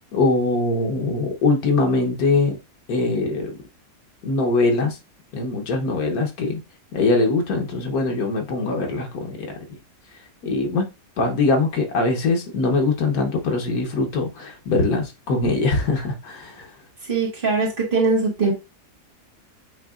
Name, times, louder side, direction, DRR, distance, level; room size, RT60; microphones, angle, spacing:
voice 1, 0.1-2.6 2.9-3.5 4.2-5.0 5.3-6.6 6.9-9.5 10.4-10.9 11.2-16.7, left 3 dB, 85° left, 1.4 m, -22 dB
voice 2, 17.0-18.5, right 3 dB, 40° right, 1.5 m, -21 dB
7.9 x 2.7 x 2.4 m
omnidirectional pair, 1.5 m